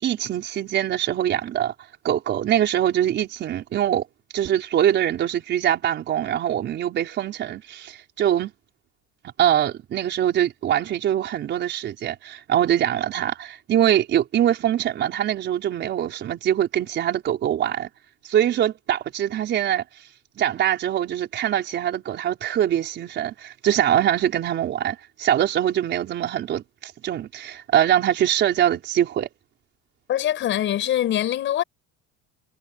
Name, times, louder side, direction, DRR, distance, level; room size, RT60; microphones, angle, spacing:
voice 1, 0.0-1.7 2.0-4.0 4.3-8.5 9.4-17.9 18.2-19.8 20.4-29.3, right 11 dB, 35° right, 4.8 m, -23 dB
voice 2, 30.1-31.6, left 11 dB, 40° left, 5.9 m, -23 dB
cardioid pair, 165°, 30 cm